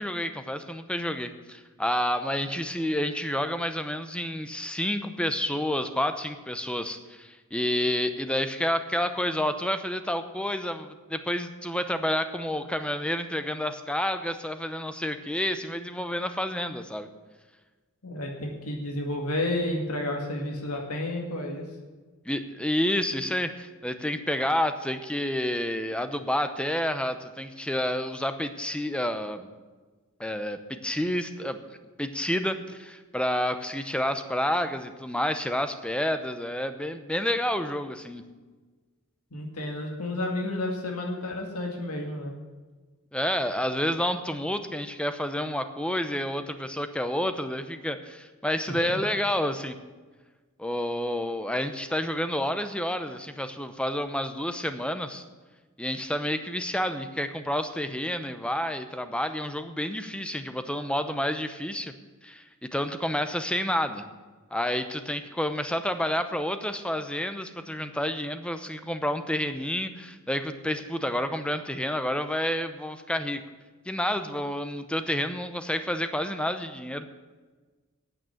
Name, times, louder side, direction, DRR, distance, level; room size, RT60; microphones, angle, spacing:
voice 1, 0.0-17.1 22.3-29.5 30.2-31.6 32.0-38.2 43.1-49.8 50.6-55.2 55.8-61.9 62.2-64.0 64.5-73.4 73.9-77.1, left 1 dB, 5° left, 9 dB, 0.8 m, -29 dB
voice 2, 18.0-21.7 39.3-42.3 48.7-49.0, left 1 dB, 80° left, 2 dB, 2.0 m, -31 dB
9.0 x 8.9 x 9.1 m, 1.3 s
head